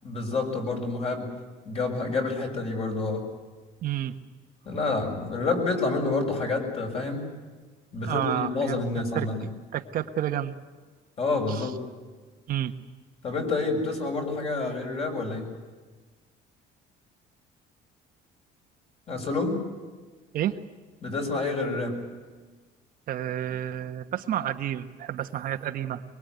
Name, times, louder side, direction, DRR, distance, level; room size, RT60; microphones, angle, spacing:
voice 1, 0.0-1.3 1.6-3.3 4.6-7.3 7.9-9.5 11.2-11.8 13.2-15.4 19.1-19.6 21.0-22.0, left 3 dB, 35° left, 3 dB, 6.6 m, -28 dB
voice 2, 3.8-4.2 8.0-10.5 11.5-11.7 12.5-12.7 20.3-20.6 23.1-26.0, right 11 dB, 50° right, 7 dB, 1.3 m, -30 dB
24.0 x 23.5 x 9.4 m, 1.4 s
cardioid pair, 155°, 18 cm